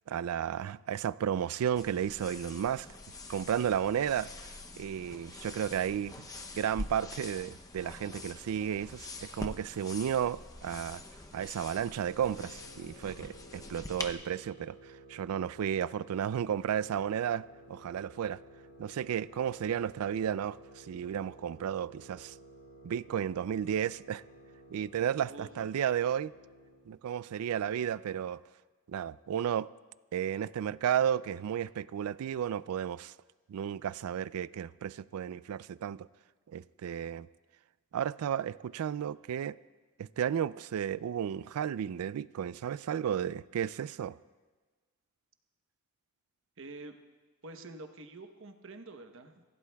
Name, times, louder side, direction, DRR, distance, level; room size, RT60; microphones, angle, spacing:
voice 1, 0.1-2.9 3.3-4.3 4.8-6.3 6.5-11.0 11.3-18.4 18.8-22.3 22.8-24.2 24.7-26.3 26.9-28.4 28.9-29.7 30.1-33.1 33.5-36.1 36.5-37.3 37.9-39.6 40.0-44.2, right 9 dB, 80° right, 0.3 m, -33 dB
sound 1, 1.8-14.1, left 2 dB, 15° left, 0.6 m, -45 dB
sound 2, 12.3-26.9, right 1 dB, 70° left, 2.1 m, -55 dB
voice 2, 25.3-25.8 46.6-47.0 47.4-49.4, right 2 dB, 60° right, 0.9 m, -47 dB
24.0 x 16.0 x 2.3 m
head